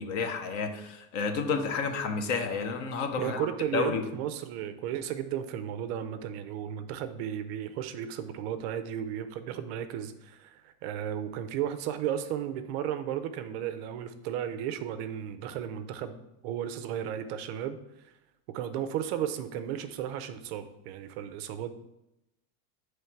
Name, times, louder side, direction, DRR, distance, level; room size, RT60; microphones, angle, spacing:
voice 1, 0.0-3.5 3.7-4.0, left 5 dB, 40° left, 6 dB, 0.6 m, -30 dB
voice 2, 3.2-17.8 18.5-21.7, right 10 dB, 50° right, 9 dB, 0.4 m, -34 dB
7.0 x 3.1 x 4.4 m, 0.90 s
cardioid pair, 180°, 40 cm